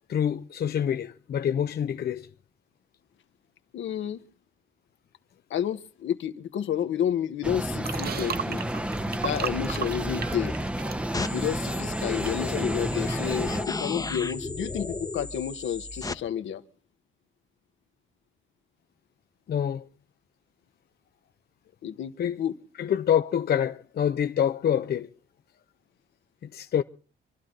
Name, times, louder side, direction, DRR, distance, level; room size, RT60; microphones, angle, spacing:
voice 1, 0.1-2.3 19.5-19.9 22.2-22.4 22.8-25.1 26.5-26.8, left 9 dB, 50° left, 0.7 m, -26 dB
voice 2, 3.7-4.2 5.5-8.6 9.2-10.5 11.3-16.6 21.8-22.5, left 9 dB, 75° left, 1.4 m, -30 dB
sound 1, 7.4-13.6, right 1 dB, 5° right, 0.8 m, -31 dB
sound 2, 7.8-12.3 12.6-12.7, right 8 dB, 50° right, 0.9 m, -36 dB
sound 3, 11.1-16.1, left 3 dB, 20° left, 1.0 m, -34 dB
27.0 x 12.0 x 3.8 m
cardioid pair, 90°, 20 cm